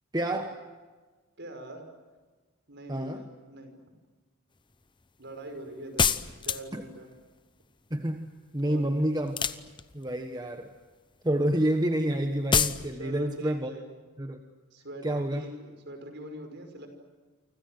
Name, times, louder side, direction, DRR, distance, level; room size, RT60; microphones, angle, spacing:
voice 1, 0.1-0.6 2.9-3.3 6.7-6.8 7.9-8.3 8.5-9.4 9.9-10.7 11.2-13.7 14.2-14.4 15.0-15.5, right 1 dB, 20° right, 5 dB, 1.3 m, -28 dB
voice 2, 1.4-1.8 2.7-3.7 5.2-6.1 6.4-7.1 8.6-8.8 13.0-13.8 14.7-16.9, right 1 dB, 55° right, 7 dB, 5.6 m, -43 dB
sound 1, 6.0-6.9 9.3-10.1 12.5-12.8, left 6 dB, 20° left, 0.8 m, -25 dB
30.0 x 25.0 x 7.9 m, 1.3 s
head